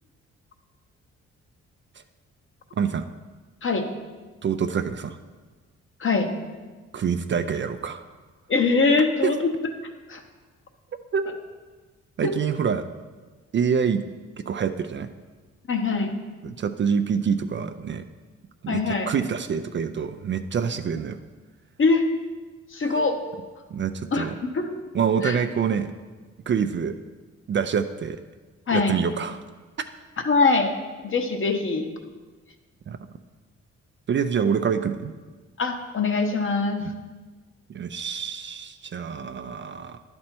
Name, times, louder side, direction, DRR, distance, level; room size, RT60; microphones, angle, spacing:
voice 1, 4.4-5.2 6.9-8.0 9.2-9.3 11.1-11.2 12.2-12.9 13.5-14.0 14.5-15.1 16.4-18.0 18.6-21.2 23.7-24.3 24.9-25.9 26.5-26.9 27.5-28.2 28.7-29.4 32.9-33.0 34.1-35.1 36.8-36.9 37.7-40.0, right 7 dB, 40° right, 9 dB, 0.4 m, -26 dB
voice 2, 8.5-9.5 10.1-10.2 12.2-12.3 15.7-16.1 18.7-19.1 21.8-22.0 22.7-23.2 24.1-24.3 24.6-24.8 25.2-25.4 28.7-29.0 30.3-30.7 31.0-31.8 35.6-36.8, left 4 dB, 45° left, 5 dB, 1.0 m, -22 dB
10.5 x 4.3 x 4.4 m, 1.4 s
cardioid pair, 65°, 29 cm